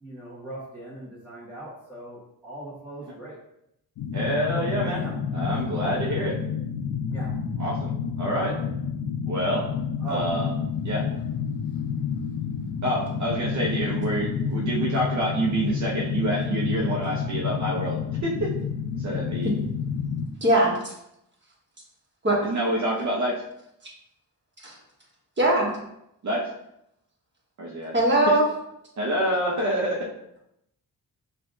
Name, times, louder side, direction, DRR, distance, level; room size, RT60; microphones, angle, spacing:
voice 1, 0.0-3.4 4.8-5.1 7.1-7.3 8.2-8.5 10.0-10.3, right 1 dB, 5° right, -11 dB, 1.3 m, -39 dB
sound 1, 4.0-20.3, left 6 dB, 75° left, 0.5 m, -29 dB
voice 2, 4.1-5.0 5.3-6.3 7.6-7.9 8.2-8.5 9.3-9.7 10.1-10.5 10.8-11.0 12.8-18.5 19.0-19.5 22.4-23.4 26.2-26.5 27.6-27.9 29.0-30.0, right 1 dB, 50° right, -3 dB, 0.8 m, -27 dB
voice 3, 20.4-20.9 22.2-22.4 24.6-24.7 25.4-25.7 27.9-28.4, right 1 dB, 30° right, -3 dB, 1.3 m, -20 dB
5.6 x 2.5 x 2.6 m, 0.80 s
cardioid pair, 85°, 37 cm